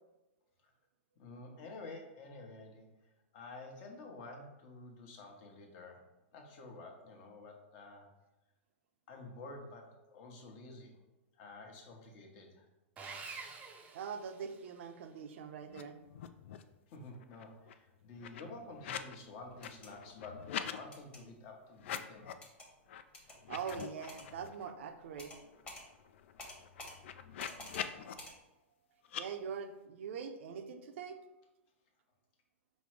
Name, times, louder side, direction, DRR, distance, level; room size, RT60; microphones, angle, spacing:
voice 1, 1.2-6.1 6.3-8.1 9.1-11.0 11.4-12.7 16.9-22.3, left 2 dB, 45° left, 2 dB, 1.0 m, -50 dB
Sawing, 13.0-14.9, right 4 dB, 20° right, 0.5 m, -48 dB
voice 2, 13.9-16.0 23.5-25.3 29.2-31.2, right 6 dB, 65° right, 7 dB, 0.5 m, -43 dB
sound 1, 15.7-15.8 16.1-16.8 17.1-19.2 19.5-20.8 21.7-22.5 22.9-23.0 23.4-24.7 25.1-25.2 25.5-28.1 29.0-29.2, left 9 dB, 65° left, 0.3 m, -44 dB
sound 2, 19.5-19.9 20.9-21.2 22.4-22.7 23.1-23.4 23.7-24.3 25.2-25.4 25.7-25.8 26.4-26.9 27.4-27.9 28.2-28.3, left 1 dB, 15° left, 1.1 m, -49 dB
5.2 x 2.1 x 4.6 m, 1.0 s
hypercardioid pair, 130°, 7 cm